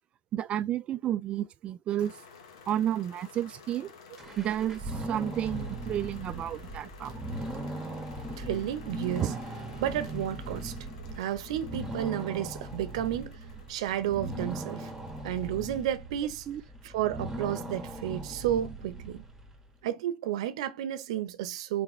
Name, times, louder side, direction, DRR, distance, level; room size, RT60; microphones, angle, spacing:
voice 1, 0.3-2.1 2.7-3.9 4.4-7.2 9.2-9.4 16.5-16.6, right 11 dB, 35° right, 0.3 m, -31 dB
sound 1, 2.0-15.5, left 5 dB, 85° left, 1.1 m, -53 dB
sound 2, 4.2-19.6, right 1 dB, 10° right, 1.3 m, -39 dB
voice 2, 8.4-9.3 9.8-10.7 11.1-13.4 13.7-14.9 15.2-16.5 16.8-19.2 19.8-21.8, right 11 dB, 80° right, 0.7 m, -32 dB
4.3 x 3.6 x 3.1 m
supercardioid pair, 115°, 3 cm